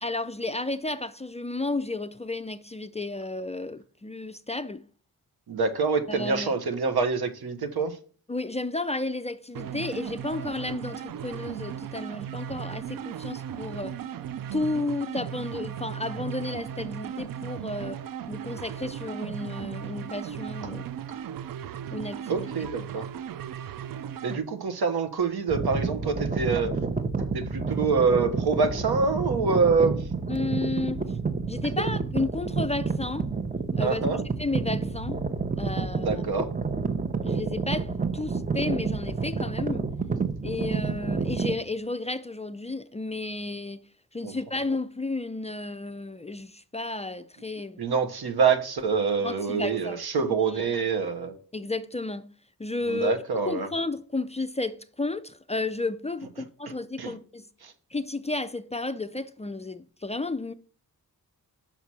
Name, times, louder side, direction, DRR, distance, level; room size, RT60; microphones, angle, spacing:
voice 1, 0.0-4.8 6.1-6.5 8.3-14.0 14.5-18.0 18.3-20.8 21.9-22.5 22.9-23.1 30.3-31.1 31.5-33.3 33.8-35.2 35.6-36.2 36.9-39.9 40.4-43.8 44.1-47.8 49.2-50.4 51.5-52.3 52.6-53.2 53.5-57.5 57.9-60.5, left 2 dB, 20° left, 0.3 m, -32 dB
voice 2, 5.5-8.0 22.3-23.1 24.2-26.7 27.2-30.0 33.8-34.2 36.0-36.5 44.2-44.3 47.8-51.3 52.9-53.7 57.0-57.1 57.6-57.7, right 4 dB, 85° right, 1.0 m, -26 dB
sound 1, 9.5-24.4, right 9 dB, 65° right, 0.5 m, -36 dB
sound 2, 25.5-41.5, right 4 dB, 20° right, 0.7 m, -29 dB
5.9 x 4.2 x 6.1 m
wide cardioid pair, 80°, 37 cm